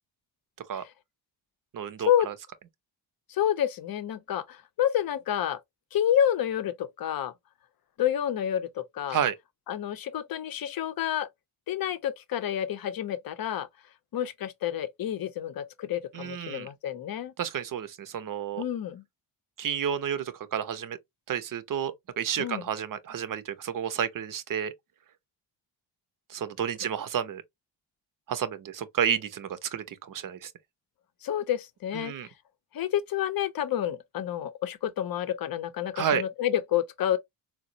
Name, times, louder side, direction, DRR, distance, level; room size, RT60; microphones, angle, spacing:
voice 1, 1.7-2.3 9.1-9.4 16.1-16.7 17.4-18.6 19.6-21.0 21.3-24.7 26.3-27.4 28.3-30.5 31.9-32.3 36.0-36.2, right 8 dB, 45° right, 0.6 m, -31 dB
voice 2, 3.3-5.6 5.9-7.3 8.0-9.2 9.7-11.3 11.7-13.7 14.1-17.3 18.6-19.0 22.4-22.6 31.2-32.1 32.7-37.2, left 10 dB, 50° left, 0.5 m, -29 dB
4.0 x 2.0 x 2.6 m
cardioid pair, 75°, 48 cm